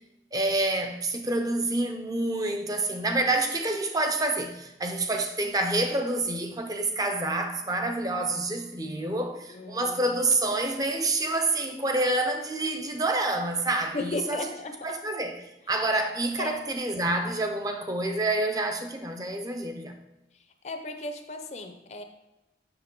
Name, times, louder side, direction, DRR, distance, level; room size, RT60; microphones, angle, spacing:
voice 1, 0.3-14.5 14.8-20.0, right 2 dB, 20° right, 0.6 m, -28 dB
voice 2, 9.5-10.2 13.9-15.0 16.4-16.6 20.6-22.0, left 2 dB, 40° left, 0.6 m, -35 dB
6.9 x 6.1 x 3.8 m
head